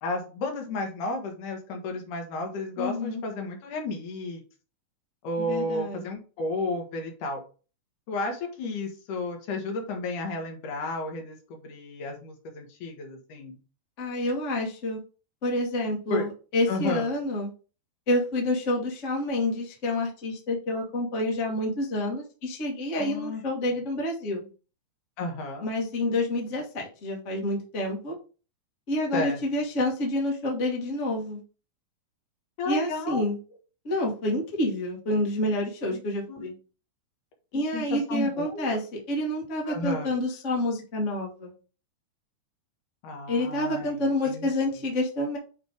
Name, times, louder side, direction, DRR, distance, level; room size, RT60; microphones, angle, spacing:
voice 1, 0.0-4.4 5.2-7.4 8.1-13.6 16.1-16.2 16.7-17.1 23.0-23.4 25.2-25.7 29.1-29.6 32.6-33.2 36.3-36.5 37.7-38.8 39.7-40.1 43.0-44.5, left 2 dB, 75° left, 3 dB, 2.9 m, -32 dB
voice 2, 2.8-3.2 5.4-6.0 14.0-15.0 15.4-17.5 18.1-24.5 25.6-28.1 28.9-31.4 32.6-33.4 33.8-36.5 37.5-41.5 43.3-45.4, left 1 dB, 30° left, 0 dB, 1.4 m, -28 dB
8.7 x 3.4 x 3.5 m, 0.35 s
omnidirectional pair, 3.6 m